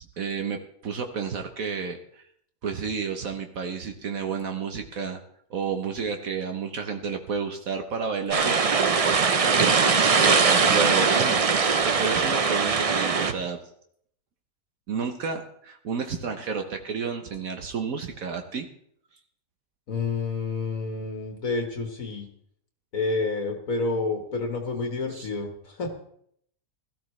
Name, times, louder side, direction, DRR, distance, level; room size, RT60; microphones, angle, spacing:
voice 1, 0.2-2.2 2.6-5.2 5.5-11.4 11.8-13.6 14.9-18.7 25.1-25.3, right 5 dB, 65° right, 5 dB, 1.4 m, -31 dB
sound 1, 8.3-13.3, right 5 dB, 50° right, 0.4 m, -21 dB
voice 2, 19.9-22.3 22.9-25.9, left 3 dB, 60° left, 3 dB, 1.8 m, -29 dB
17.0 x 13.5 x 3.2 m, 0.68 s
omnidirectional pair, 1.6 m